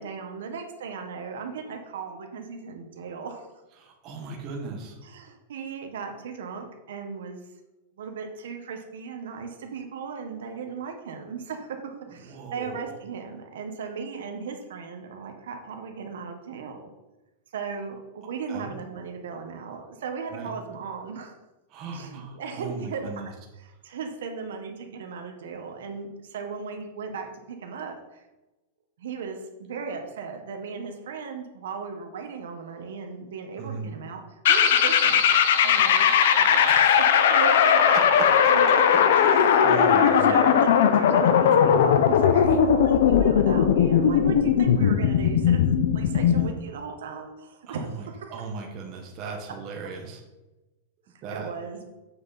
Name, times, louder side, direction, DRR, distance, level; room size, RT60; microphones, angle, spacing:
voice 1, 0.0-3.5 5.0-7.4 8.0-16.9 17.5-21.3 21.9-28.2 29.0-34.2 34.5-36.7 37.0-45.6 45.9-48.5 51.3-51.9, right 5 dB, 80° right, 4 dB, 1.3 m, -36 dB
voice 2, 3.8-5.0 12.2-12.9 18.5-18.7 20.3-20.5 21.7-23.3 33.6-33.9 36.7-37.0 39.2-40.4 47.7-50.2 51.2-51.5, right 5 dB, 25° right, 0 dB, 1.3 m, -37 dB
sound 1, 34.4-46.5, left 8 dB, 60° left, 0.6 m, -19 dB
7.7 x 5.8 x 4.2 m, 1.1 s
supercardioid pair, 175°, 0 cm